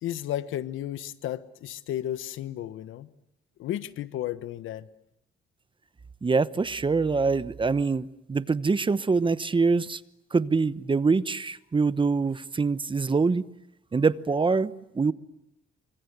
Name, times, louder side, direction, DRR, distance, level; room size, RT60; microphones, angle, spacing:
voice 1, 0.0-3.1 3.6-4.9, left 12 dB, 85° left, 1.3 m, -33 dB
voice 2, 6.2-10.0 10.3-13.4 13.9-15.1, right 4 dB, 25° right, 1.0 m, -24 dB
29.0 x 25.5 x 8.1 m
cardioid pair, 90°, 20 cm